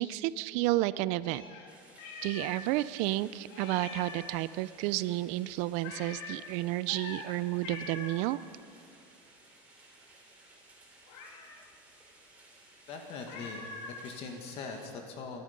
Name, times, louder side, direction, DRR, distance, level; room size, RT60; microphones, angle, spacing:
voice 1, 0.0-1.4 2.2-8.4, right 17 dB, 65° right, 17 dB, 0.5 m, -31 dB
Meow, 1.2-2.7 3.0-3.1 3.5-4.4 5.8-6.4 6.9-7.3 7.6-8.2 11.1-11.7 13.3-14.0, left 4 dB, 80° left, 2.2 m, -44 dB
sound 1, 1.7-14.9, right 2 dB, 10° right, 3.7 m, -58 dB
voice 2, 12.9-15.4, left 4 dB, 50° left, 3 dB, 1.8 m, -42 dB
21.5 x 11.5 x 5.2 m, 2.3 s
supercardioid pair, 130°, 13 cm